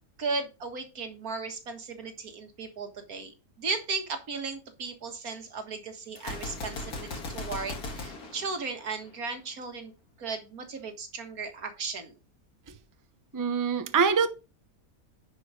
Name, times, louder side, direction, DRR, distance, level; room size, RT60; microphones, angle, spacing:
voice 1, 0.2-9.9 10.2-12.1, right 4 dB, 75° right, 2.1 m, -36 dB
Gunshot gunfire, 6.2-9.3, left 3 dB, 85° left, 2.3 m, -38 dB
voice 2, 13.3-14.3, right 6 dB, 15° right, 0.7 m, -24 dB
10.5 x 5.4 x 4.9 m
omnidirectional pair, 1.6 m